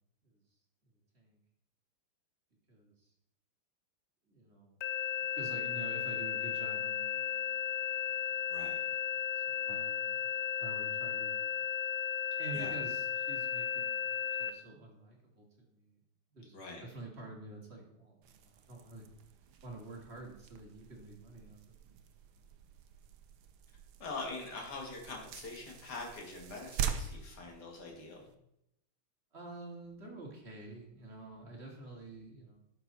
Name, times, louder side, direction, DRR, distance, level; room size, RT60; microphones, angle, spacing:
voice 1, 2.7-3.1 4.3-4.8 5.3-11.6 12.4-16.0 16.3-19.1 19.6-22.0 29.3-32.6, right 2 dB, 30° right, -1 dB, 2.5 m, -49 dB
sound 1, 4.8-14.5, left 9 dB, 90° left, 1.7 m, -35 dB
sound 2, 18.2-28.3, right 8 dB, 75° right, 1.5 m, -44 dB
voice 2, 24.0-28.2, left 3 dB, 50° left, 0 dB, 2.6 m, -43 dB
11.0 x 6.8 x 4.2 m, 0.78 s
omnidirectional pair, 2.4 m